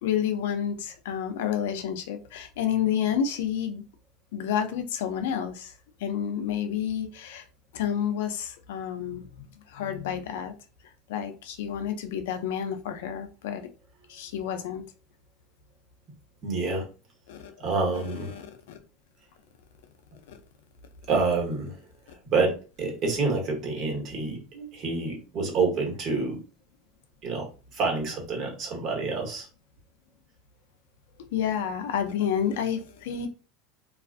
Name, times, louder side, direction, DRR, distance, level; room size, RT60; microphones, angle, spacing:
voice 1, 0.0-3.8 4.3-5.7 6.0-7.4 7.7-10.5 11.1-13.7 14.1-14.8 17.3-17.7 17.9-18.8 20.3-20.4 31.3-33.3, left 8 dB, 85° left, 0.4 m, -30 dB
voice 2, 16.4-16.8 17.6-18.4 21.1-21.7 22.2-26.4 27.2-27.5 27.7-29.5, right 3 dB, 45° right, 1.1 m, -27 dB
2.4 x 2.3 x 2.4 m
supercardioid pair, 125°, 0 cm